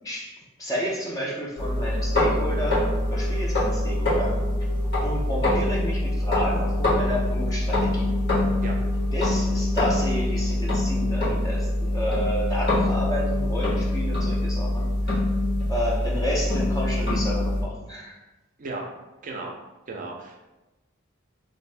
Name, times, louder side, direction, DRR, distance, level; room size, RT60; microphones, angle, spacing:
voice 1, 0.0-4.4 5.0-8.1 9.1-14.9 15.7-18.2, equal, 15° left, -3 dB, 0.5 m, -31 dB
sound 1, 1.6-17.6, left 1 dB, 55° left, 1.1 m, -24 dB
voice 2, 19.2-19.6 19.9-20.4, right 3 dB, 40° right, 0 dB, 0.4 m, -34 dB
2.6 x 2.5 x 3.2 m, 1.0 s
head